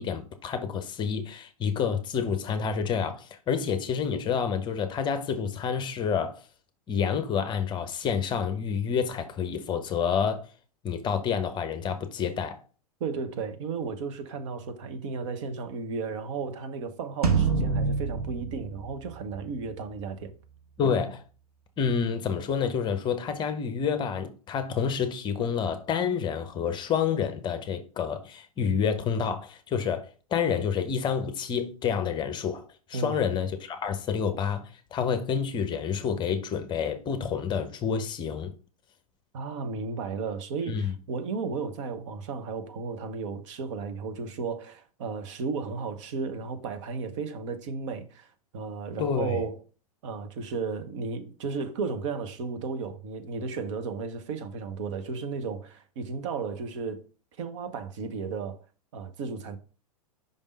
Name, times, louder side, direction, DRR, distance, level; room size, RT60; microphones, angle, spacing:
voice 1, 0.0-6.4 6.9-10.5 10.8-12.6 20.8-21.2 21.8-38.5 40.6-40.9 49.0-49.4, left 7 dB, 25° left, 0.8 m, -28 dB
voice 2, 13.0-20.3 32.9-33.2 39.3-48.3 48.5-49.6 50.0-57.0 57.4-58.6 58.9-59.6, right 4 dB, 50° right, 1.0 m, -34 dB
sound 1, 17.2-19.8, right 5 dB, 70° right, 1.1 m, -27 dB
5.4 x 3.6 x 5.2 m
figure-of-eight pair, 100°, 20 cm